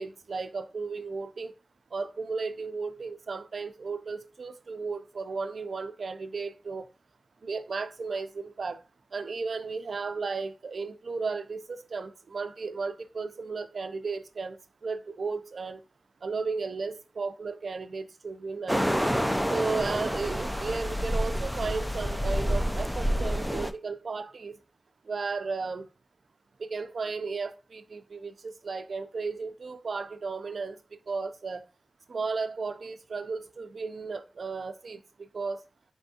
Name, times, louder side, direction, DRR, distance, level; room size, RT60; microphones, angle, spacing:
voice 1, 0.0-1.5 1.9-6.8 7.4-8.8 9.1-15.8 16.2-19.1 19.5-24.5 25.1-25.9 26.6-30.8 31.1-31.6 32.1-35.0 35.3-35.6, right 4 dB, 80° right, 0.4 m, -34 dB
sound 1, 18.7-23.7, equal, 5° left, 0.3 m, -28 dB
4.3 x 3.3 x 2.7 m
wide cardioid pair, 95°, 0 cm